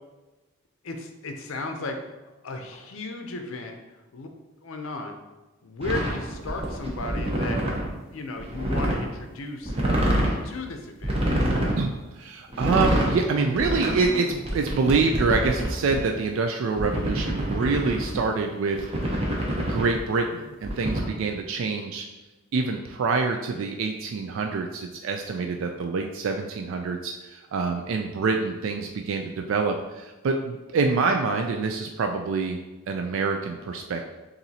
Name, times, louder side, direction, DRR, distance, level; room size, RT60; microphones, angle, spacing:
voice 1, 0.8-2.0 2.4-3.8 4.1-4.3 4.6-5.2 5.6-7.6 8.1-9.7 10.4-11.1, left 2 dB, 70° left, 5 dB, 0.6 m, -34 dB
sound 1, 5.8-7.9 8.4-9.1 9.6-10.4 11.0-11.8 12.5-13.2 13.6-16.0 16.8-18.2 18.7-20.0 20.6-21.0, right 1 dB, 25° right, 0.7 m, -26 dB
voice 2, 11.8-18.9 19.7-22.1 22.5-32.6 32.9-34.1, right 4 dB, 65° right, 4 dB, 0.3 m, -26 dB
6.9 x 2.6 x 2.8 m, 1.1 s
head